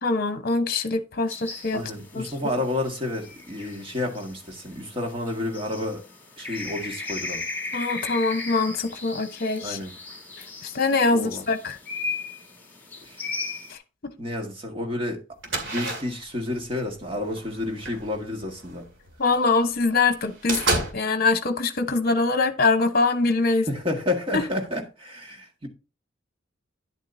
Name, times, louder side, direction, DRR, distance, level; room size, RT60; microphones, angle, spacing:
voice 1, 0.0-1.8 2.1-2.3 7.7-9.8 10.6-11.8 13.7-13.8 19.2-23.7 24.3-24.4, left 3 dB, 50° left, 1.0 m, -23 dB
sound 1, 1.3-13.7, left 3 dB, 10° left, 1.8 m, -37 dB
voice 2, 1.7-6.0 6.4-7.4 9.6-9.9 11.1-11.5 13.1-13.3 14.2-15.2 15.6-18.9 23.7-25.7, left 2 dB, 30° right, 1.8 m, -30 dB
sound 2, 15.4-19.2 19.6-19.7 20.1-20.9, right 2 dB, 75° right, 2.4 m, -30 dB
10.5 x 7.5 x 2.7 m
head